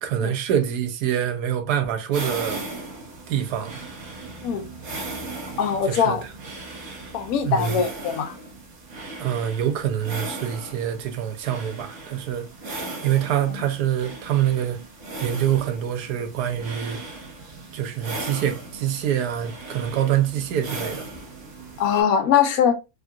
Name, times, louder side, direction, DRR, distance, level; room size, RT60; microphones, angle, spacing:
voice 1, 0.0-2.6 3.3-3.8 5.9-6.2 7.4-7.8 9.2-12.5 13.0-14.8 15.2-17.0 17.7-21.1, right 10 dB, 90° right, 1.2 m, -25 dB
sound 1, 2.1-22.0, right 2 dB, 50° right, 1.3 m, -37 dB
voice 2, 5.6-6.2 7.1-8.4 21.8-22.7, left 8 dB, 70° left, 1.0 m, -21 dB
3.6 x 2.4 x 2.2 m
omnidirectional pair, 1.7 m